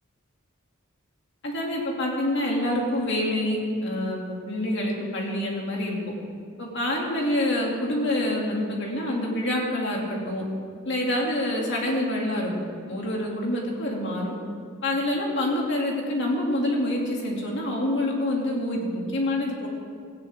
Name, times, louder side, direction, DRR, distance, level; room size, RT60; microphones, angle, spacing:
voice 1, 1.4-6.0 6.6-10.4 10.8-12.5 12.9-14.3 14.8-19.7, left 1 dB, 55° left, -2 dB, 2.7 m, -26 dB
17.0 x 16.5 x 3.7 m, 2.2 s
head